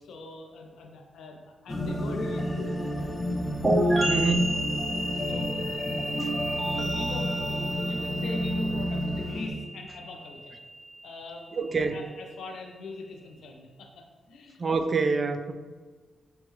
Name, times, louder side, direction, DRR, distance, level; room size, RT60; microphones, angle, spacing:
voice 1, 0.0-3.2 3.8-6.1 6.7-10.6 11.0-14.6, left 3 dB, 80° left, 2 dB, 0.6 m, -43 dB
sound 1, 1.7-9.5, equal, 20° left, 0.6 m, -31 dB
sound 2, 3.6-11.2, right 1 dB, 15° right, 1.2 m, -31 dB
voice 2, 4.1-4.6 11.6-12.0 14.6-15.5, right 4 dB, 45° right, 8 dB, 0.3 m, -26 dB
6.2 x 2.2 x 3.1 m, 1.4 s
cardioid pair, 65°, 0 cm